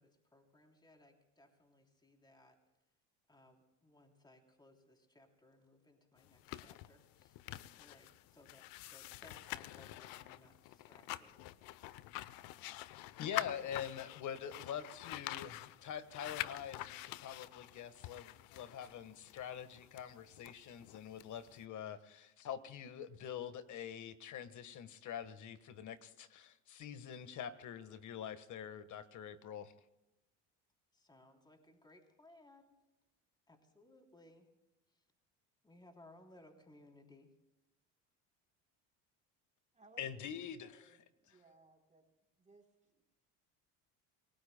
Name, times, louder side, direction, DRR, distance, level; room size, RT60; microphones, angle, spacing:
voice 1, 0.0-2.6 3.3-7.4 7.8-11.4 30.9-32.8 33.5-34.5 35.6-37.3, left 1 dB, 10° left, 3 dB, 3.3 m, -63 dB
sound 1, 6.2-21.6, left 16 dB, 70° left, 0.7 m, -47 dB
voice 2, 13.2-29.7 40.0-40.8, left 9 dB, 55° left, 12 dB, 1.4 m, -45 dB
voice 3, 40.6-42.0 42.4-43.0, right 3 dB, 20° right, 0 dB, 3.5 m, -65 dB
28.0 x 18.5 x 2.2 m, 0.98 s
supercardioid pair, 90°, 36 cm